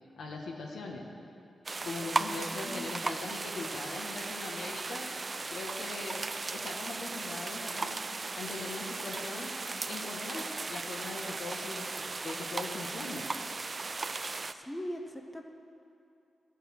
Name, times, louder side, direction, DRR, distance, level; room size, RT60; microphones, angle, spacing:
voice 1, 0.2-1.0 1.8-6.3 6.5-8.0 8.3-9.5 9.9-13.2, left 3 dB, 90° left, 0 dB, 1.5 m, -41 dB
sound 1, 1.7-14.5, right 3 dB, 30° right, 0.3 m, -37 dB
voice 2, 2.5-2.9 14.5-15.4, equal, 10° left, 4 dB, 0.6 m, -40 dB
13.5 x 6.4 x 6.4 m, 2.6 s
wide cardioid pair, 140°, 0 cm